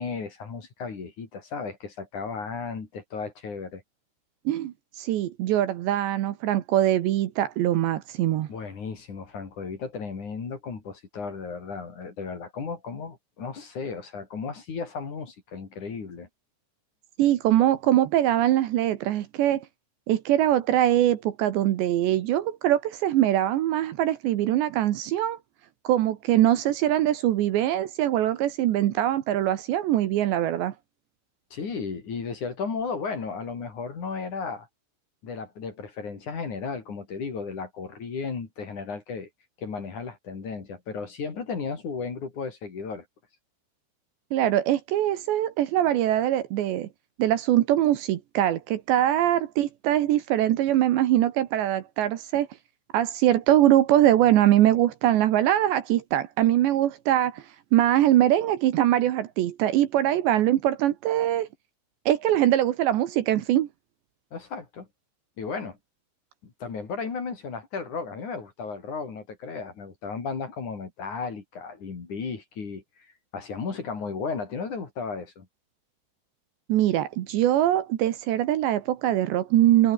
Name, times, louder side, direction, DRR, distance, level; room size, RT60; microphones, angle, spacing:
voice 1, 0.0-3.8 8.5-16.3 31.5-34.7 35.2-39.3 39.6-43.0 64.3-64.9 65.4-65.8 66.4-72.8 73.3-75.5, left 5 dB, 40° left, 4.7 m, -34 dB
voice 2, 4.5-8.5 17.2-19.6 20.1-25.4 25.8-30.7 44.3-46.9 47.2-52.5 52.9-57.4 57.7-61.5 62.1-63.7 76.7-79.9, right 12 dB, 70° right, 3.3 m, -22 dB
omnidirectional pair, 5.7 m